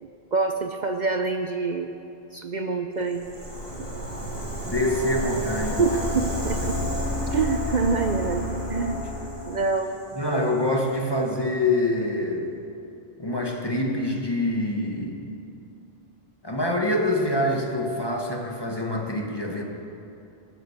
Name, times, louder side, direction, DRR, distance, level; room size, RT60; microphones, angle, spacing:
voice 1, 0.0-1.9 2.3-3.3 3.8-3.9 5.8-6.8 7.3-8.4 8.7-9.0 9.5-9.9, right 4 dB, 50° right, 5 dB, 0.8 m, -26 dB
Rattle (instrument), 3.0-11.2, right 1 dB, 30° right, 2.4 m, -43 dB
sound 1, 3.1-9.6, left 1 dB, 85° left, 4.5 m, -30 dB
voice 2, 4.6-5.9 10.1-12.5 13.2-15.2 16.4-19.6, left 1 dB, 25° left, 0 dB, 1.5 m, -25 dB
19.5 x 8.2 x 6.6 m, 2.7 s
omnidirectional pair, 1.0 m